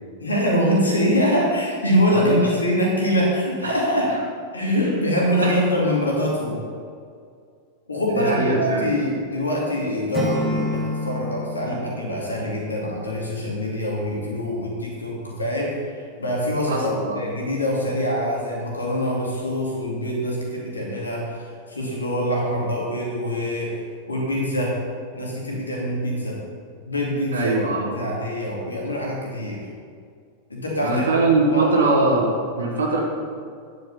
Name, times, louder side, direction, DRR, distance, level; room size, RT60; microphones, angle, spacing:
voice 1, 0.2-4.1 4.5-6.6 7.9-16.9 17.2-23.8 24.1-24.8 25.1-26.4 26.9-27.6 27.9-29.6 30.5-31.0 31.5-31.7, equal, 75° left, -3 dB, 2.5 m, -24 dB
voice 2, 2.1-2.4 3.6-3.8 5.4-5.5 8.1-8.9 16.7-17.2 27.3-28.0 30.8-33.0, right 2 dB, 70° right, -2 dB, 1.5 m, -22 dB
Acoustic guitar / Strum, 10.1-13.2, left 1 dB, ahead, 2.2 m, -29 dB
10.0 x 6.8 x 5.6 m, 2.2 s
figure-of-eight pair, 90°, 0 cm